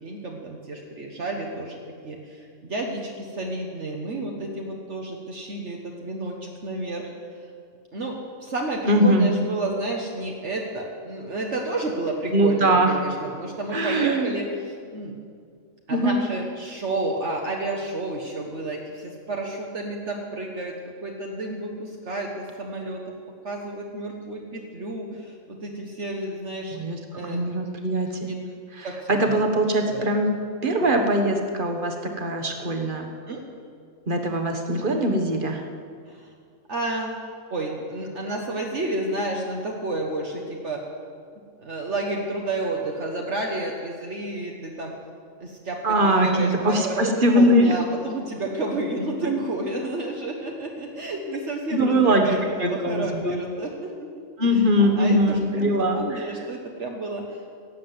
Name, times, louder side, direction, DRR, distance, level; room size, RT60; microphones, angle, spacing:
voice 1, 0.0-1.8 2.0-7.1 7.9-15.1 15.9-20.7 21.0-23.0 23.4-26.8 27.1-27.5 28.2-28.3 28.8-29.4 29.9-30.1 30.8-31.0 33.3-33.4 36.1-36.3 36.7-37.1 37.5-40.8 41.6-44.9 45.4-53.9 54.4-57.4, right 2 dB, 60° right, 0 dB, 1.5 m, -31 dB
voice 2, 8.9-9.3 12.3-12.9 13.7-14.3 15.9-16.2 26.7-28.3 28.8-30.3 30.6-33.1 34.1-35.6 45.8-47.8 49.2-49.4 51.7-53.3 54.4-56.3, right 1 dB, 40° right, 4 dB, 1.5 m, -22 dB
17.0 x 7.5 x 7.7 m, 2.2 s
omnidirectional pair, 1.4 m